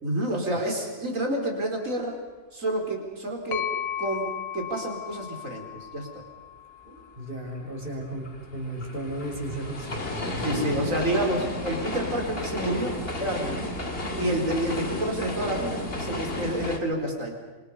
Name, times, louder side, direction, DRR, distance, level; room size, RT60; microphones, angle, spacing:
voice 1, 0.0-2.2 2.5-6.2 10.4-13.8 14.2-17.3, right 1 dB, 80° right, 2 dB, 4.5 m, -29 dB
sound 1, 3.5-7.3, left 10 dB, 90° left, 1.4 m, -35 dB
voice 2, 6.8-10.8, right 1 dB, 45° right, -1 dB, 5.4 m, -35 dB
sound 2, 7.5-16.8, left 1 dB, 45° left, 2.5 m, -33 dB
27.5 x 25.5 x 5.6 m, 1.3 s
omnidirectional pair, 1.4 m